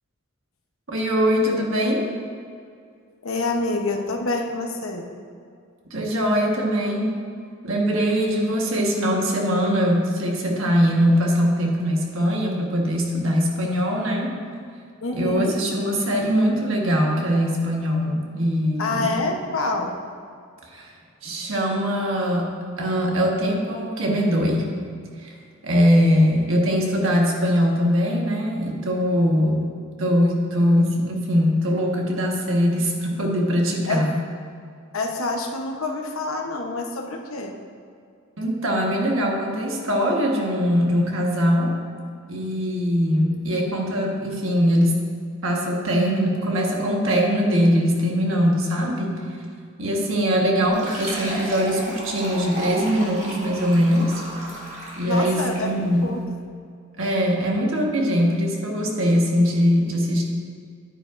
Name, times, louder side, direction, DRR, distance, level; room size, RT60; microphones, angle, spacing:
voice 1, 0.9-2.1 5.9-7.2 7.6-14.4 15.1-19.2 20.7-20.9 21.2-22.5 22.8-24.7 25.2-25.4 25.6-34.1 38.4-41.8 42.3-45.0 45.4-49.3 49.8-54.2 55.0-56.1 57.0-60.2, equal, 70° right, 0 dB, 1.4 m, -21 dB
voice 2, 3.2-5.1 15.0-15.6 18.8-20.0 29.3-29.5 33.9-34.0 34.9-37.6 49.8-50.3 55.0-56.2, left 2 dB, 75° left, 3 dB, 0.9 m, -27 dB
Fill (with liquid), 50.7-55.8, right 1 dB, 35° right, 1.7 m, -34 dB
10.0 x 9.5 x 2.5 m, 2.2 s
head